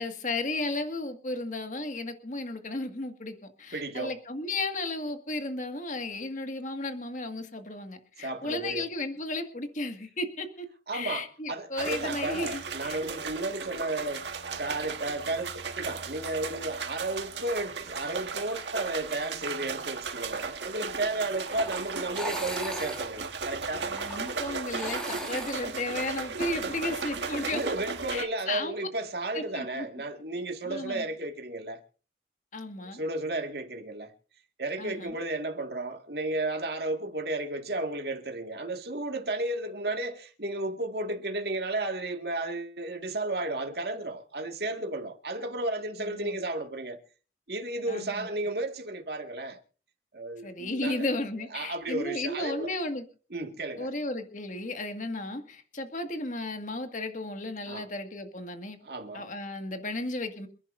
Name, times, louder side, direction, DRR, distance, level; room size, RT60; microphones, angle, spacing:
voice 1, 0.0-10.7 10.9-13.0 23.9-27.7 28.1-28.9 29.3-29.9 30.7-31.0 32.5-33.0 34.8-35.2 46.0-46.4 47.9-48.3 50.4-53.0 53.8-58.8 59.1-60.5, left 2 dB, 45° left, 2.0 m, -34 dB
voice 2, 3.7-4.2 8.2-8.8 10.9-14.3 14.6-23.9 26.6-26.9 27.5-31.8 32.9-34.1 34.6-47.0 47.5-49.6 50.1-51.1 51.5-52.7 53.3-53.9 57.7-57.9 58.8-59.3, right 2 dB, 60° right, 2.0 m, -33 dB
sound 1, 11.8-28.2, right 5 dB, 75° right, 1.8 m, -36 dB
sound 2, 21.5-27.6, equal, 5° left, 2.3 m, -40 dB
27.5 x 11.0 x 2.7 m
head